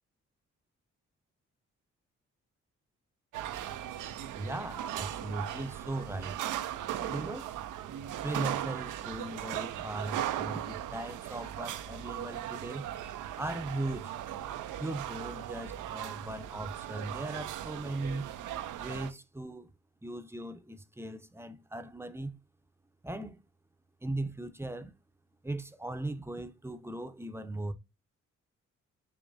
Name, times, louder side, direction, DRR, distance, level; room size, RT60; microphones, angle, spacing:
sound 1, 3.3-19.1, right 11 dB, 75° right, 0.6 m, -38 dB
voice 1, 4.3-6.4 7.0-7.5 8.2-12.9 13.4-14.1 14.8-18.3 18.8-19.7 20.0-22.4 23.0-23.4 24.0-24.9 25.4-27.7, right 2 dB, 10° right, 0.7 m, -38 dB
7.0 x 2.9 x 2.6 m
supercardioid pair, 50°, 31 cm